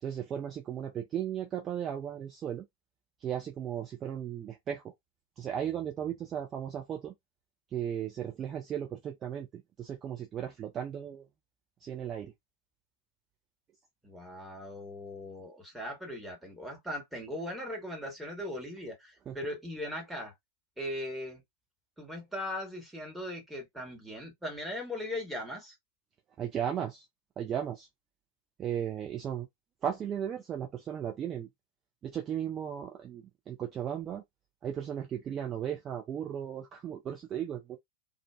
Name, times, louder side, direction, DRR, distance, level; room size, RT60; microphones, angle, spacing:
voice 1, 0.0-2.6 3.2-4.8 5.4-7.1 7.7-11.2 11.8-12.3 19.3-19.4 26.4-27.0 27.4-27.9 28.6-29.5 29.8-31.5 32.0-34.2 34.6-37.8, right 9 dB, 25° right, 0.5 m, -36 dB
voice 2, 14.0-20.3 20.8-21.4 22.0-25.7, left 1 dB, 5° right, 1.3 m, -39 dB
2.4 x 2.2 x 2.2 m
figure-of-eight pair, 90°, 0 cm